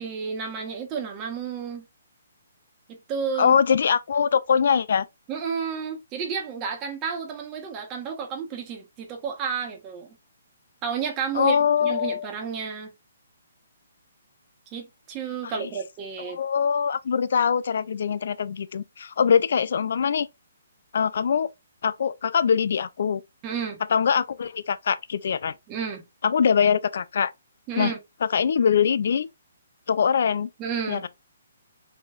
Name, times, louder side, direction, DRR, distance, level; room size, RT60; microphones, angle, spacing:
voice 1, 0.0-1.8 2.9-3.5 5.3-10.1 10.8-12.9 14.7-16.4 23.4-23.8 25.7-26.0 27.7-28.0 30.6-31.0, right 6 dB, 20° right, 1.4 m, -31 dB
voice 2, 3.4-5.1 11.3-12.3 15.4-15.7 16.2-20.3 20.9-21.5 21.8-23.2 23.9-25.5 26.2-27.3 27.8-27.9 28.2-29.3 29.9-30.5 30.9-31.1, left 7 dB, 60° left, 0.4 m, -23 dB
4.8 x 4.3 x 2.5 m
hypercardioid pair, 155°, 0 cm